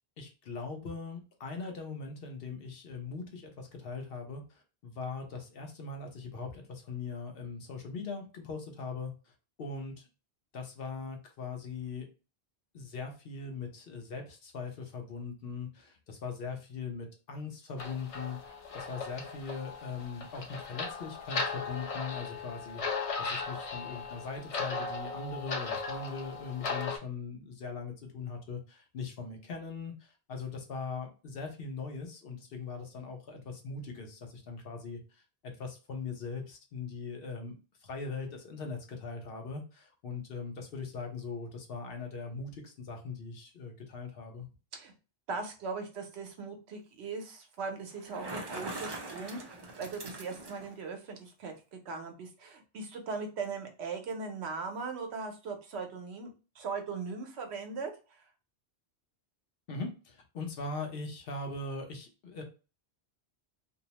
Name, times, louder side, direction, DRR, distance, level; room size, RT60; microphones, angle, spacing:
voice 1, 0.2-9.1 9.6-10.0 10.5-12.1 12.7-37.6 37.8-44.5 59.7-62.4, left 4 dB, 65° left, 3 dB, 0.8 m, -40 dB
sound 1, 17.8-27.0, left 4 dB, 50° left, 0.4 m, -37 dB
voice 2, 45.3-57.9, right 4 dB, 85° right, 4 dB, 0.9 m, -39 dB
Bicycle, 47.9-50.8, right 2 dB, 40° right, 0.3 m, -42 dB
2.6 x 2.0 x 2.8 m, 0.33 s
omnidirectional pair, 1.1 m